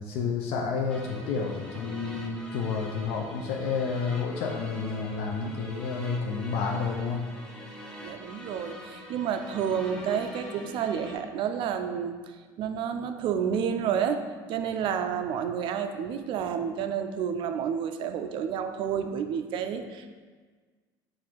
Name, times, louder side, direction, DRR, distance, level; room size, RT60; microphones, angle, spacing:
voice 1, 0.0-7.3, left 5 dB, 75° left, 1 dB, 0.4 m, -30 dB
sound 1, 0.9-11.2, equal, 10° left, 0.6 m, -45 dB
voice 2, 8.0-20.1, right 7 dB, 55° right, 8 dB, 0.3 m, -30 dB
4.0 x 2.5 x 4.4 m, 1.5 s
supercardioid pair, 110°, 10 cm